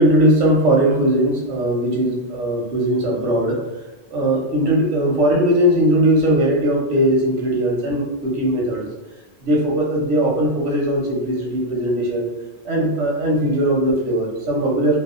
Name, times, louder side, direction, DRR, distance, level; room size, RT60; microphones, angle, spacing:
voice 1, 0.0-3.6 4.1-8.9 9.4-12.3 12.6-15.0, right 1 dB, 90° right, -1 dB, 1.0 m, -19 dB
2.6 x 2.1 x 2.4 m, 1.0 s
omnidirectional pair, 1.2 m